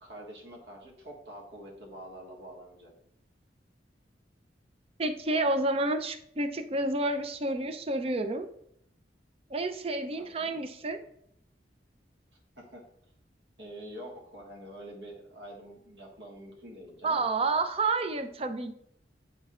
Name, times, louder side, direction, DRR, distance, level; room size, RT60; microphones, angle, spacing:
voice 1, 0.0-2.9 10.2-10.6 12.6-12.8 13.6-17.2, right 1 dB, 70° right, -2 dB, 1.6 m, -46 dB
voice 2, 5.0-8.5 9.5-11.0 17.0-18.7, right 2 dB, 35° right, 8 dB, 0.5 m, -29 dB
10.0 x 4.4 x 2.4 m, 0.72 s
head